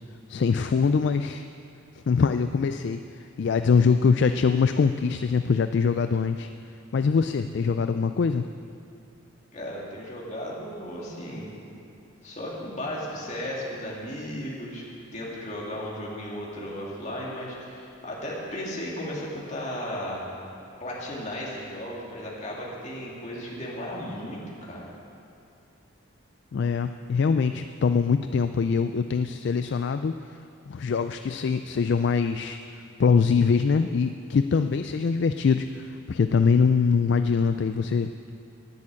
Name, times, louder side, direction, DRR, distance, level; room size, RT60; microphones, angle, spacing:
voice 1, 0.3-1.5 1.9-6.5 6.9-8.5 26.5-30.4 30.7-32.6 33.0-38.1, left 5 dB, 55° left, 9 dB, 0.3 m, -23 dB
voice 2, 9.5-11.5 12.2-14.9 15.1-20.2 20.8-24.8, equal, 35° left, -4 dB, 2.7 m, -35 dB
10.5 x 10.0 x 8.4 m, 2.6 s
head